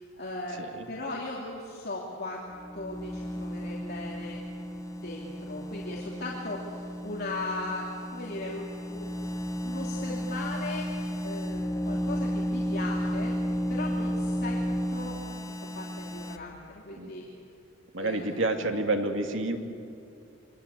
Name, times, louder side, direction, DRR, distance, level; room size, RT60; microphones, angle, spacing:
voice 1, 0.0-0.6 0.9-4.4 4.9-9.1 9.6-10.9 11.2-13.4 13.7-14.6 14.9-15.2 15.7-17.2 18.0-18.4, left 2 dB, 50° left, -3 dB, 3.2 m, -38 dB
sound 1, 2.5-16.4, equal, 15° left, 0.9 m, -33 dB
voice 2, 17.9-19.6, right 2 dB, 65° right, 4 dB, 2.5 m, -28 dB
27.5 x 24.0 x 8.5 m, 2.6 s
head